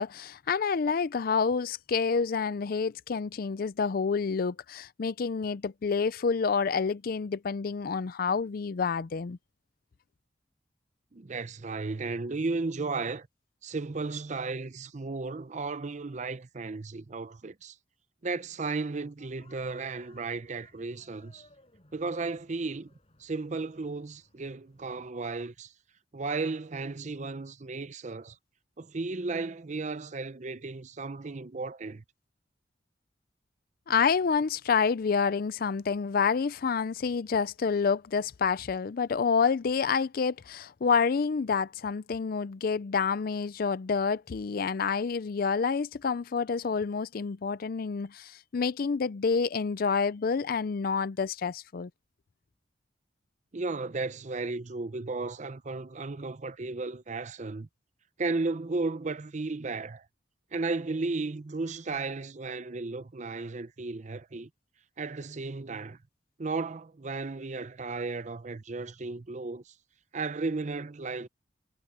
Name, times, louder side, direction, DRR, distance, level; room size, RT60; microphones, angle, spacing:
voice 1, 0.0-9.4 33.9-51.9, left 5 dB, 50° left, 0.4 m, -28 dB
voice 2, 11.1-13.3 13.6-17.8 18.2-21.5 21.9-22.9 23.2-25.7 26.1-28.4 28.8-32.0 53.5-57.7 58.2-60.1 60.5-64.5 65.0-66.0 66.4-69.7 70.1-71.3, right 3 dB, 40° right, 0.6 m, -34 dB
sound 1, 19.2-25.1, left 2 dB, 35° left, 7.7 m, -62 dB
head